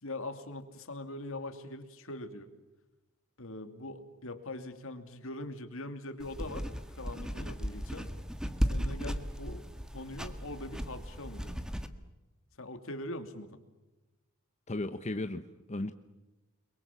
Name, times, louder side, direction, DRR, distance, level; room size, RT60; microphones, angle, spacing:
voice 1, 0.0-2.5 3.4-8.1 8.6-9.6 9.9-11.6 12.6-13.6, left 2 dB, 70° left, 8 dB, 2.7 m, -42 dB
sound 1, 6.2-11.9, equal, 5° right, 1.5 m, -36 dB
voice 2, 14.7-15.9, left 2 dB, 35° left, 8 dB, 1.0 m, -35 dB
30.0 x 22.5 x 7.3 m, 1.1 s
head